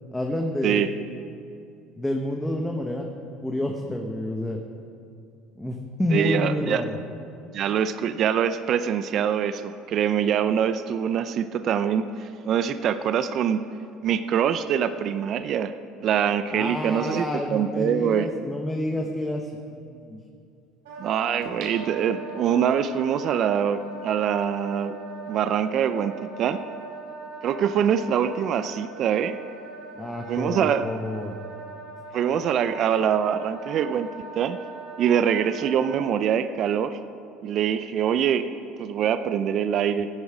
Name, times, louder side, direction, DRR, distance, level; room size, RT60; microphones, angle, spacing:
voice 1, 0.1-0.9 2.0-3.1 3.4-4.6 5.6-7.0 16.5-20.2 30.0-31.3, left 1 dB, 5° left, 1 dB, 1.2 m, -29 dB
voice 2, 6.1-6.8 7.5-13.6 14.0-15.7 16.0-18.3 21.0-25.0 25.3-26.6 27.4-29.4 30.3-30.9 32.1-34.1 34.4-34.6 35.0-37.0 37.4-38.5 38.8-40.1, right 8 dB, 55° right, 12 dB, 0.5 m, -24 dB
Wind instrument woodwind instrument, 20.8-36.1, right 4 dB, 90° right, 3.8 m, -40 dB
sound 1, 21.4-22.7 23.2-23.3, right 4 dB, 70° right, 2.3 m, -44 dB
15.5 x 9.7 x 5.0 m, 2.6 s
supercardioid pair, 85°, 0 cm